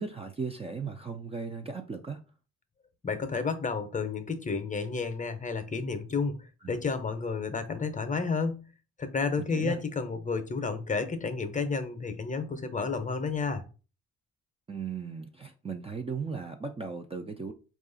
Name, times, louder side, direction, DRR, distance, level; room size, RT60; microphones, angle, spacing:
voice 1, 0.0-2.2 6.6-6.8 9.4-9.8 14.7-17.5, right 5 dB, 20° right, 0.4 m, -37 dB
voice 2, 3.0-8.7 9.0-13.7, left 4 dB, 25° left, 0.7 m, -31 dB
4.7 x 2.4 x 3.8 m
cardioid pair, 90°, 30 cm